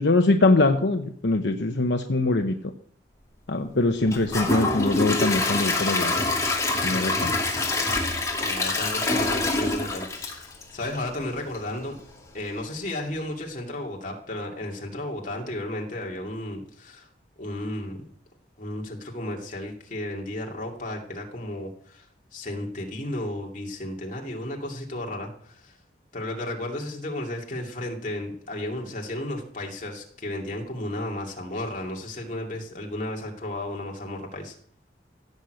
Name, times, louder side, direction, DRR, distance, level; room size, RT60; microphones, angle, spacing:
voice 1, 0.0-2.6 3.5-6.1 6.8-7.3, left 2 dB, 75° left, 5 dB, 0.9 m, -22 dB
Gurgling / Toilet flush / Trickle dribble, 4.1-11.1 11.5-11.6 12.1-12.2, left 2 dB, 20° left, 2.4 m, -25 dB
voice 2, 8.4-12.0 12.3-17.1 17.4-18.0 18.6-22.0 22.3-25.7 26.1-34.5, left 1 dB, 45° left, 0 dB, 2.5 m, -33 dB
16.5 x 6.6 x 7.8 m, 0.63 s
head